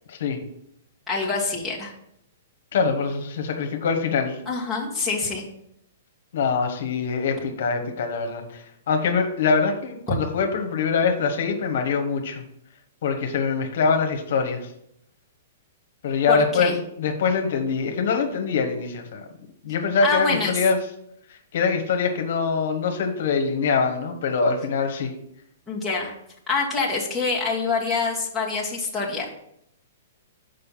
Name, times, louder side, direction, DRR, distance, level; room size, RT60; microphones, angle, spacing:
voice 1, 1.1-1.9 4.4-5.4 16.3-16.8 20.0-20.6 25.7-26.1 26.5-29.3, left 4 dB, ahead, -8 dB, 1.6 m, -26 dB
voice 2, 2.7-4.4 6.3-12.4 13.0-14.6 16.0-19.2 19.6-20.8 21.5-25.1, left 5 dB, 60° left, 4 dB, 1.2 m, -24 dB
6.6 x 5.4 x 5.5 m, 0.75 s
hypercardioid pair, 160°, 0 cm